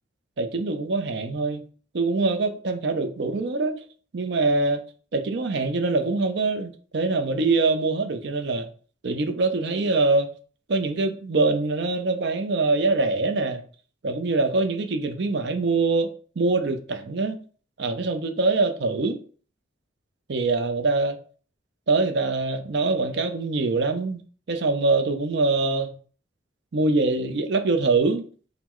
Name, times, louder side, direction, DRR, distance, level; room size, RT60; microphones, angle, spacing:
voice 1, 0.4-1.6 1.9-3.8 4.1-4.8 5.1-8.7 9.0-10.3 10.7-13.6 14.0-16.1 16.4-17.4 17.8-19.2 20.3-21.2 21.9-24.2 24.5-25.9 26.7-28.3, right 3 dB, 60° right, 0.5 m, -24 dB
4.0 x 2.1 x 4.3 m
head